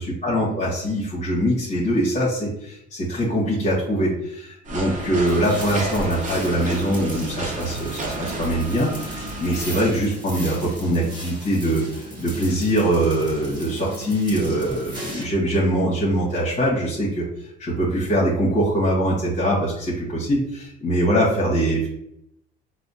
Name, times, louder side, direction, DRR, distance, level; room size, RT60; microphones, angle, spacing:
voice 1, 0.0-17.2 17.6-21.9, right 1 dB, 40° left, -6 dB, 1.2 m, -23 dB
sound 1, 4.6-9.7, right 1 dB, 40° right, 0.8 m, -32 dB
sound 2, 5.3-15.2, right 1 dB, 25° right, 1.2 m, -37 dB
4.2 x 2.1 x 2.7 m, 0.76 s
cardioid pair, 95°, 19 cm